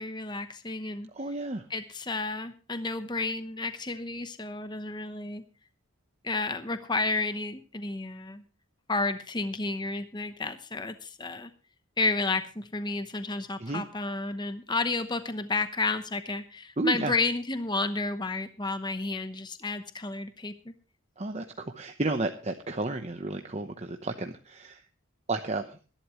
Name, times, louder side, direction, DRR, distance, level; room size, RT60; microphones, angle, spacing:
voice 1, 0.0-1.1 1.7-5.4 6.2-8.4 8.9-11.5 12.0-20.7, left 3 dB, 20° left, 10 dB, 0.9 m, -31 dB
voice 2, 1.1-1.6 13.6-13.8 16.8-17.1 21.2-24.8 25.3-25.6, right 2 dB, 30° right, 6 dB, 0.9 m, -32 dB
21.0 x 11.5 x 3.1 m, 0.35 s
head